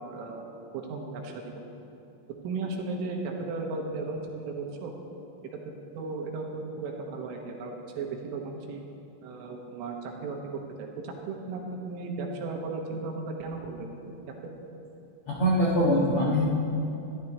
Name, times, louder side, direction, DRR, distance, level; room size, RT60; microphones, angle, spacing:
voice 1, 0.0-1.6 2.4-4.9 5.5-8.8 9.2-10.4 10.8-14.1, right 3 dB, 80° right, 1 dB, 3.9 m, -36 dB
voice 2, 15.3-16.5, equal, 85° left, -6 dB, 1.2 m, -23 dB
22.0 x 14.5 x 3.2 m, 3.0 s
omnidirectional pair, 5.9 m